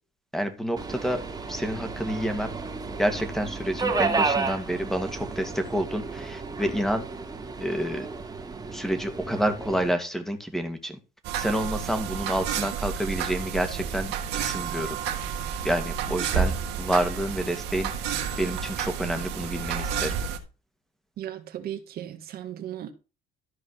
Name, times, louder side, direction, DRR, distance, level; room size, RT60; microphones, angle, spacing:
voice 1, 0.3-1.2 1.5-2.5 3.0-7.0 7.6-8.1 8.7-11.0 11.4-15.0 15.6-17.9 18.2-20.2, equal, ahead, 2.1 m, -29 dB
Subway metro underground, 0.8-9.9, right 4 dB, 25° right, 2.3 m, -32 dB
sound 1, 11.2-20.4, right 7 dB, 90° right, 1.9 m, -30 dB
voice 2, 21.2-22.9, right 11 dB, 65° right, 1.9 m, -36 dB
13.0 x 5.1 x 5.7 m
cardioid pair, 110°, 17 cm